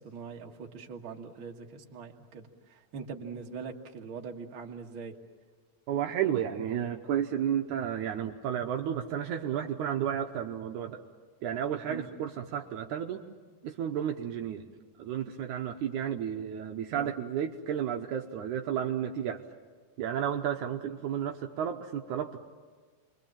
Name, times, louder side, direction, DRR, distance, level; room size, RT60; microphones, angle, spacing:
voice 1, 0.0-5.2 11.9-12.1 17.0-17.1, right 5 dB, 45° right, 2 dB, 2.0 m, -42 dB
voice 2, 5.9-11.0 11.4-13.2 13.6-14.7 15.0-19.4 20.0-22.4, right 9 dB, 75° right, 4 dB, 2.2 m, -32 dB
29.0 x 23.0 x 7.3 m, 1.5 s
omnidirectional pair, 3.8 m